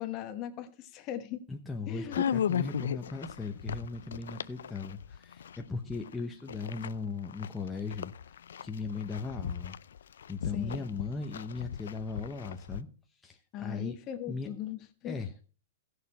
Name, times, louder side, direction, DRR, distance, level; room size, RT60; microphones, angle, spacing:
voice 1, 0.0-1.4 1.9-2.2 10.5-10.9 13.5-15.2, left 11 dB, 30° left, 9 dB, 1.1 m, -39 dB
voice 2, 1.5-8.1 8.6-9.8 10.3-12.9 13.2-14.0 14.3-14.5 15.1-15.4, left 4 dB, 10° left, 2 dB, 0.8 m, -38 dB
sound 1, 2.1-6.1 6.5-12.8, left 8 dB, 90° left, 0.4 m, -36 dB
16.5 x 6.6 x 4.2 m, 0.38 s
hypercardioid pair, 155°, 0 cm